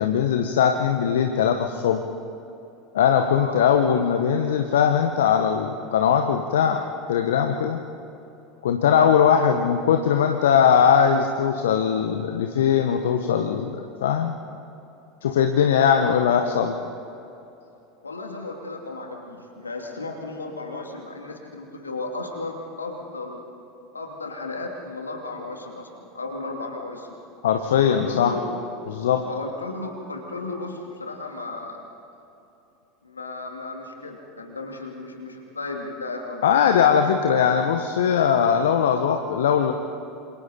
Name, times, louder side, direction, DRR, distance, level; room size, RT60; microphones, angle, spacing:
voice 1, 0.0-2.0 2.9-7.8 8.6-14.4 15.2-16.7 27.4-28.3 28.9-29.3 36.4-39.7, left 8 dB, 70° left, 6 dB, 1.1 m, -20 dB
voice 2, 3.3-3.6 15.7-16.1 18.0-23.5 23.9-25.9 26.1-27.1 27.8-28.4 29.3-31.8 33.0-36.4, left 3 dB, 85° left, 1 dB, 2.7 m, -34 dB
27.5 x 27.5 x 4.3 m, 2.8 s
figure-of-eight pair, 80°, 0 cm